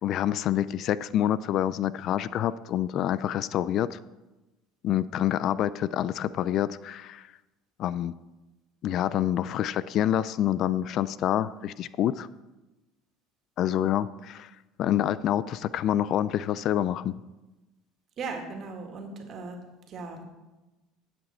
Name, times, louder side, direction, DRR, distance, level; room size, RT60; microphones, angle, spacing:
voice 1, 0.0-4.0 4.8-7.3 7.8-8.1 8.8-12.3 13.6-14.5 14.8-17.2, left 11 dB, 50° left, 17 dB, 0.3 m, -27 dB
voice 2, 18.2-19.6 19.9-20.2, right 4 dB, 45° right, 3 dB, 2.0 m, -37 dB
12.0 x 7.9 x 4.4 m, 1.1 s
supercardioid pair, 120°, 0 cm